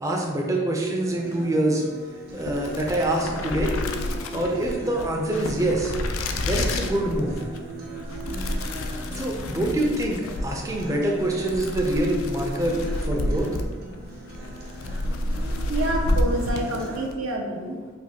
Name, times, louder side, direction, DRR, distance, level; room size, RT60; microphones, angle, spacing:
voice 1, 0.0-1.8 2.3-3.7 4.3-6.0 6.4-7.4 9.1-13.5, right 1 dB, 15° right, 0 dB, 0.4 m, -25 dB
Acoustic guitar, 1.1-17.1, equal, 50° right, 0.7 m, -38 dB
sound 1, 2.3-17.2, left 1 dB, 90° left, 0.3 m, -30 dB
voice 2, 15.4-17.9, right 1 dB, 90° right, 1 dB, 0.6 m, -28 dB
5.0 x 2.1 x 2.8 m, 1.5 s
head